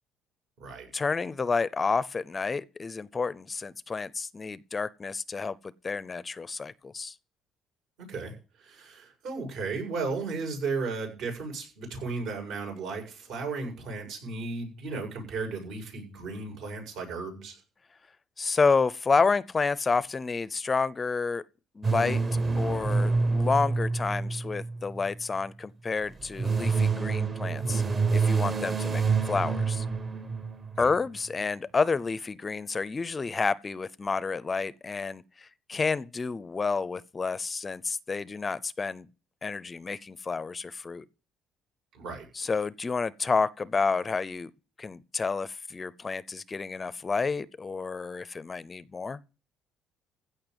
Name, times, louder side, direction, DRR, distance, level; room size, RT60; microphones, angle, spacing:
voice 1, 0.9-5.6 5.8-7.1 18.4-21.4 21.8-22.2 22.6-27.8 28.1-29.9 30.8-39.1 39.4-41.0 42.3-44.5 44.8-49.2, left 4 dB, 25° left, 0.5 m, -29 dB
voice 2, 8.6-17.6 30.8-30.9 41.9-42.3, right 4 dB, 75° right, 7.1 m, -35 dB
sound 1, 21.8-25.2 26.1-30.9, right 4 dB, 30° right, 1.0 m, -27 dB
16.0 x 5.6 x 8.0 m
cardioid pair, 130°, 0 cm